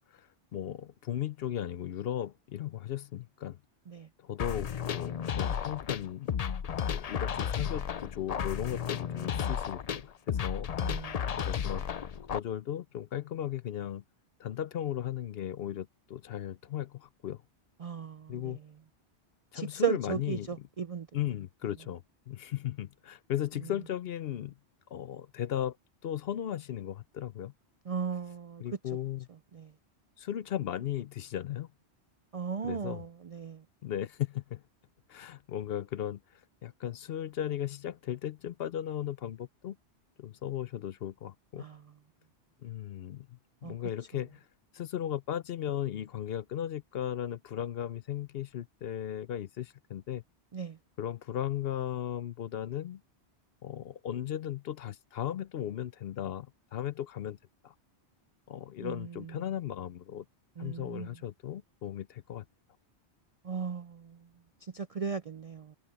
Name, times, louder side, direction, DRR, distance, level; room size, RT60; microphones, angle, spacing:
voice 1, 0.0-3.6 4.2-6.3 6.9-10.7 11.4-11.9 12.3-14.0 14.4-17.4 18.3-18.6 19.5-20.7 21.1-24.6 24.9-25.8 26.0-27.5 28.6-29.3 30.2-31.7 32.6-33.1 33.8-34.6 35.1-39.8 40.2-41.7 42.6-44.4 44.7-50.2 51.0-53.0 53.6-57.4 57.6-57.7 58.5-60.2 60.6-62.4, left 11 dB, 65° left, 0.8 m, -36 dB
sound 1, 4.4-12.4, left 8 dB, 45° left, 0.5 m, -33 dB
voice 2, 10.8-11.2 17.8-18.6 19.5-21.1 27.9-28.6 29.5-29.7 32.3-33.6 41.6-41.8 43.6-43.7 50.5-50.8 58.8-59.3 60.6-61.1 63.4-64.2 64.6-65.8, right 6 dB, 55° right, 0.4 m, -36 dB
omnidirectional pair, 1.2 m